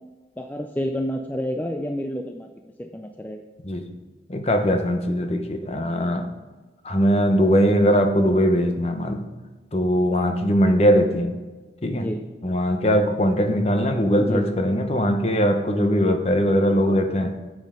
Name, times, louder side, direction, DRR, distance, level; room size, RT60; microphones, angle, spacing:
voice 1, 0.4-2.5 2.8-3.4 11.9-12.2 14.2-14.5, equal, 10° left, 4 dB, 0.4 m, -29 dB
voice 2, 4.3-6.3 6.8-9.2 9.7-11.4 11.8-12.1 12.4-17.3, equal, 35° left, 6 dB, 0.8 m, -20 dB
9.4 x 7.4 x 3.7 m, 1.3 s
head